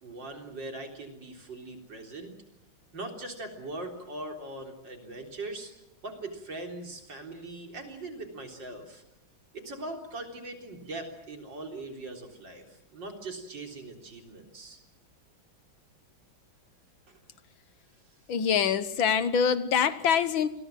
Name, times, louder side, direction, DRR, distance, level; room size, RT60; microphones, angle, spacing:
voice 1, 0.0-2.3 2.9-5.7 6.0-9.0 9.5-14.8 17.1-17.2, right 2 dB, 60° right, 3 dB, 4.3 m, -41 dB
voice 2, 18.3-20.5, left 7 dB, 75° left, 13 dB, 1.9 m, -25 dB
28.5 x 21.5 x 7.6 m, 0.88 s
omnidirectional pair, 2.2 m